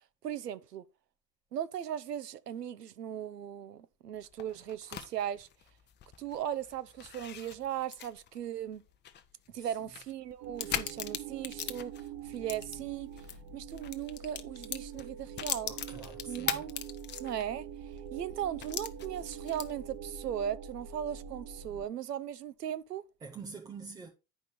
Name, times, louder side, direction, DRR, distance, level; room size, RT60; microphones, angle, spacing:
voice 1, 0.2-0.8 1.5-5.5 6.2-8.8 9.5-11.9 12.2-13.1 13.5-15.7 16.3-16.8 17.2-17.7 18.1-23.0, right 10 dB, 75° right, 0.7 m, -37 dB
sound 1, 4.2-13.4 13.7-17.6 18.0-18.1 18.6-19.9, left 10 dB, 20° left, 0.7 m, -40 dB
sound 2, 10.4-21.8, right 7 dB, 45° right, 1.2 m, -45 dB
voice 2, 15.7-16.6 23.2-24.1, right 4 dB, 10° right, 0.3 m, -46 dB
9.9 x 5.1 x 4.1 m
figure-of-eight pair, 75°, 49 cm